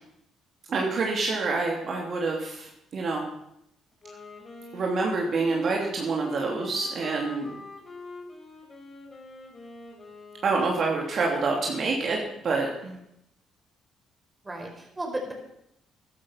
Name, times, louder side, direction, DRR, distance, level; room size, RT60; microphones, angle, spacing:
voice 1, 0.7-3.2 4.7-7.5 10.4-13.0, right 3 dB, 55° right, -1 dB, 2.8 m, -27 dB
Wind instrument woodwind instrument, 3.9-11.1, left 3 dB, 30° left, 4.5 m, -45 dB
voice 2, 14.4-15.3, right 1 dB, 20° right, 2 dB, 4.8 m, -35 dB
13.5 x 11.0 x 5.8 m, 0.79 s
supercardioid pair, 75°, 0 cm